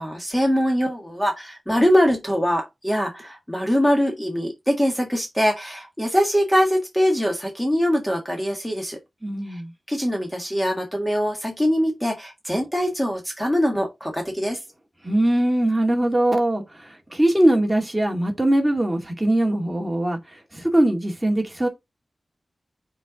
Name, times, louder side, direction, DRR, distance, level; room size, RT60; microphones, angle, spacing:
voice 1, 0.0-9.0 9.5-9.6 9.9-14.6, equal, 5° left, 1.8 m, -23 dB
voice 2, 9.2-9.7 15.0-21.7, right 1 dB, 10° right, 2.2 m, -21 dB
5.5 x 4.7 x 5.0 m
wide cardioid pair, 115°, 0 cm